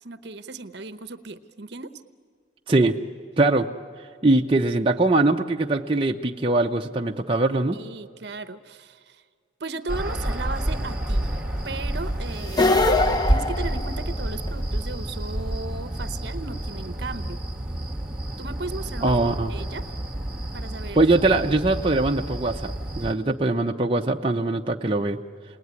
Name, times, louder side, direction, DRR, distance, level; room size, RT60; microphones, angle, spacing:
voice 1, 0.0-1.9 7.7-9.2 9.6-11.3 11.6-12.9 13.3-17.4 18.4-19.2 19.5-19.9 20.5-21.0, right 3 dB, 55° right, 12 dB, 0.9 m, -36 dB
voice 2, 2.7-3.0 3.4-3.7 4.2-7.8 19.0-19.5 20.9-25.2, right 2 dB, 25° right, 1 dB, 0.6 m, -22 dB
sound 1, 9.9-23.1, right 1 dB, 5° right, 1.5 m, -29 dB
sound 2, 12.4-14.5, left 2 dB, 20° left, 0.8 m, -22 dB
29.0 x 20.0 x 9.6 m, 2.1 s
head